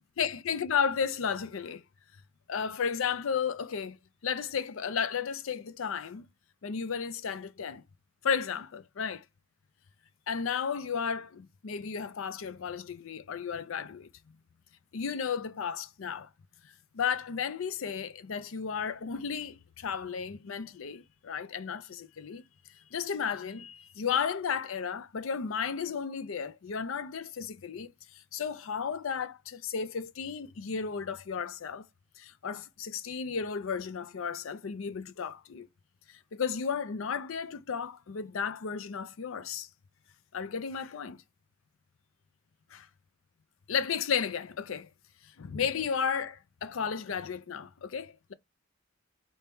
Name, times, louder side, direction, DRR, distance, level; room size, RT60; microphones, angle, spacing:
voice 1, 0.2-1.8 2.5-4.0 4.2-6.3 6.6-7.8 8.2-9.2 10.3-14.1 14.9-16.3 16.9-22.4 22.9-31.9 32.2-35.7 36.1-39.7 40.3-41.2 42.7-42.9 43.7-44.9 45.2-48.3, left 6 dB, 75° left, 0.5 m, -33 dB
3.4 x 2.8 x 4.3 m
head